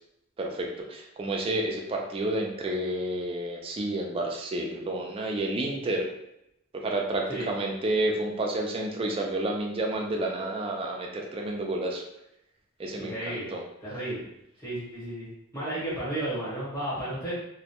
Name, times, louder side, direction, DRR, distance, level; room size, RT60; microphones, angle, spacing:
voice 1, 0.4-6.1 6.7-12.0 12.8-13.6, right 1 dB, 25° right, 0 dB, 0.3 m, -30 dB
voice 2, 13.0-13.5 13.8-14.2 14.6-15.3 15.5-17.3, right 1 dB, 15° left, -10 dB, 1.0 m, -33 dB
2.1 x 2.1 x 2.8 m, 0.82 s
head